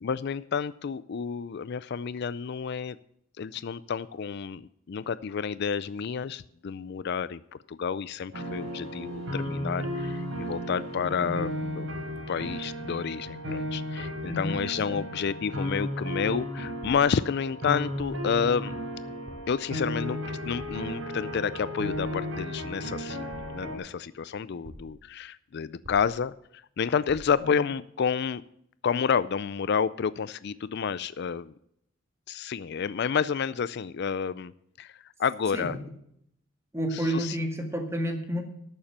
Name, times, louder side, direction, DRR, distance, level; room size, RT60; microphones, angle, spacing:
voice 1, 0.0-3.0 3.4-11.9 12.3-18.7 19.5-23.2 23.5-26.3 26.8-28.4 28.8-31.5 32.3-34.5 34.8-34.9 35.2-35.8 36.9-37.4, left 6 dB, 55° left, 17 dB, 0.4 m, -30 dB
sound 1, 8.3-23.8, equal, 80° right, 3.9 m, -34 dB
voice 2, 10.9-11.4 14.3-14.6 14.9-15.0 27.4-27.5 35.5-35.8 36.7-38.4, equal, 15° right, 4 dB, 1.9 m, -30 dB
sound 2, 16.8-17.3 18.0-18.4 19.3-19.7 20.6-21.0 21.9-22.4 23.3-23.9 24.6-25.1 25.8-26.4 27.1-27.5, equal, 60° right, 2.5 m, -48 dB
12.5 x 7.2 x 6.7 m, 0.72 s
head